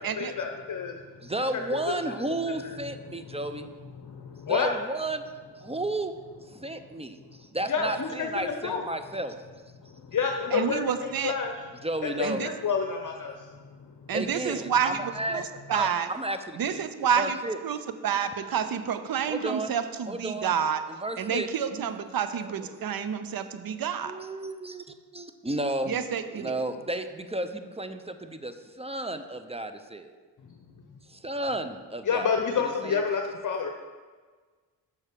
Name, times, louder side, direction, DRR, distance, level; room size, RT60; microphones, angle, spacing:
voice 1, 0.2-1.0 1.5-1.9 3.1-3.4 4.0-4.7 7.7-8.8 9.8-11.5 12.0-13.7 30.4-30.5 32.1-33.7, left 6 dB, 45° left, 3 dB, 0.9 m, -29 dB
voice 2, 1.2-3.7 4.5-5.2 5.6-6.1 6.5-9.4 11.8-12.5 14.1-15.4 15.7-16.9 17.2-17.6 19.3-19.8 20.1-20.5 21.0-21.5 22.3-22.5 22.8-22.9 24.0-26.0 26.3-30.1 31.1-32.3 32.8-33.0, right 1 dB, 15° right, 9 dB, 0.7 m, -33 dB
voice 3, 10.5-11.3 12.2-12.5 14.1-16.1 16.6-17.4 17.6-20.8 21.2-24.1 25.8-26.6, right 8 dB, 55° right, 11 dB, 0.8 m, -29 dB
7.2 x 6.3 x 5.1 m, 1.4 s
supercardioid pair, 50°, 42 cm